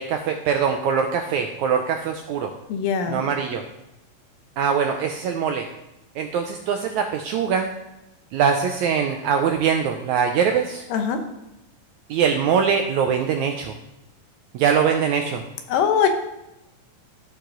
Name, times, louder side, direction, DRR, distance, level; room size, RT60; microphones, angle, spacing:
voice 1, 0.0-2.5 3.1-3.6 4.6-5.7 6.1-7.7 8.3-10.8 12.1-13.7 14.5-15.4, right 7 dB, 90° right, 4 dB, 1.7 m, -22 dB
voice 2, 2.7-3.2 10.9-11.2 15.7-16.1, left 7 dB, 85° left, 6 dB, 2.7 m, -21 dB
14.0 x 4.9 x 3.8 m, 0.92 s
omnidirectional pair, 4.0 m